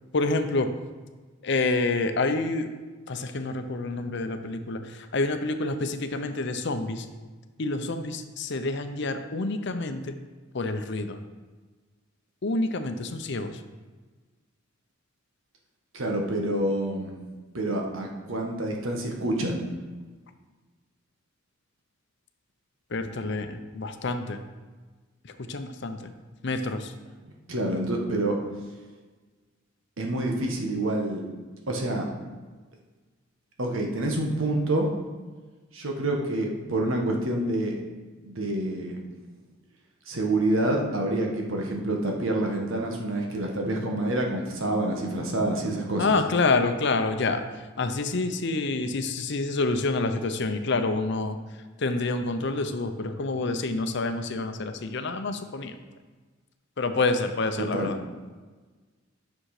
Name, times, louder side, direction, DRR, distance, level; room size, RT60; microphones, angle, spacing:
voice 1, 0.1-0.7 1.4-2.7 3.1-7.1 7.6-10.1 10.5-11.2 12.4-13.5 22.9-24.4 25.4-26.1 26.4-26.9 46.0-47.4 47.8-51.4 51.8-55.7 56.8-58.0, left 3 dB, 60° left, 8 dB, 0.7 m, -27 dB
voice 2, 15.9-17.2 17.5-19.6 27.2-28.3 30.0-31.2 31.7-32.1 33.6-34.9 35.7-37.8 38.2-39.0 40.1-46.1 57.6-57.9, right 1 dB, 80° right, 1 dB, 1.4 m, -27 dB
8.9 x 6.3 x 4.9 m, 1.3 s
head